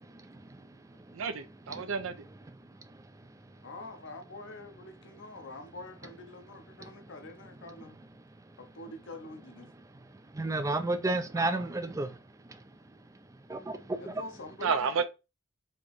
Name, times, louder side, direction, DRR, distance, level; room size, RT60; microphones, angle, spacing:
voice 1, 1.2-2.1 11.4-11.5 14.6-15.0, right 5 dB, 70° right, 0.5 m, -31 dB
voice 2, 3.6-8.0 8.6-9.7 14.0-15.0, left 2 dB, 55° left, 0.7 m, -45 dB
voice 3, 10.4-12.1 13.5-13.8 14.0-14.1, right 2 dB, 15° right, 0.3 m, -30 dB
4.3 x 2.9 x 3.1 m
head